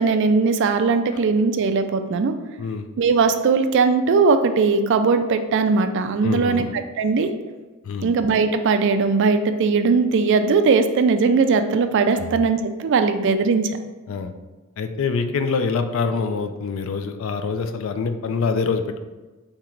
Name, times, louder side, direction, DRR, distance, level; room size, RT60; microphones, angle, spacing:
voice 1, 0.0-2.3 3.0-6.7 7.0-7.3 8.0-13.7, right 4 dB, 60° right, 8 dB, 0.3 m, -19 dB
voice 2, 6.2-6.7 7.8-8.1 12.1-12.3 14.1-14.3 14.8-19.0, left 5 dB, 65° left, 8 dB, 0.4 m, -25 dB
3.7 x 2.9 x 4.4 m, 1.2 s
head